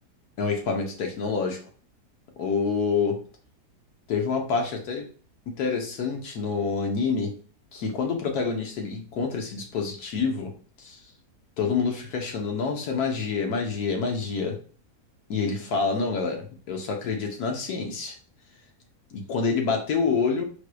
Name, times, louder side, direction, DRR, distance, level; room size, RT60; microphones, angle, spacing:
voice 1, 0.4-1.6 2.4-3.2 4.1-5.1 5.5-7.3 7.7-10.5 10.8-11.0 11.6-14.6 15.3-18.1 19.1-20.4, left 5 dB, 70° left, 3 dB, 1.4 m, -27 dB
4.6 x 4.5 x 2.3 m, 0.40 s
omnidirectional pair, 1.7 m